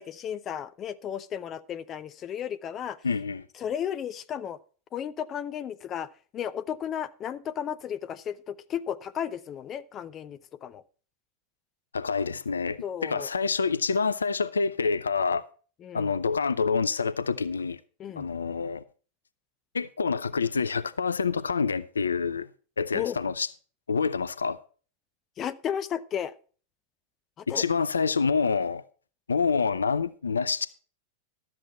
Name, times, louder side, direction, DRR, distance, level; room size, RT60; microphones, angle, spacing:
voice 1, 0.0-3.0 3.6-4.6 4.9-6.1 6.3-10.8 12.8-13.3 15.8-16.1 18.0-18.3 22.9-23.2 25.4-26.3 27.4-27.6, left 9 dB, 30° left, 0.6 m, -34 dB
voice 2, 3.0-3.4 11.9-15.4 15.9-17.8 18.2-18.8 19.7-22.5 22.8-23.5 23.9-24.6 27.5-28.8 29.3-30.7, left 5 dB, 75° left, 0.5 m, -27 dB
12.0 x 7.7 x 4.2 m
figure-of-eight pair, 90°, 0 cm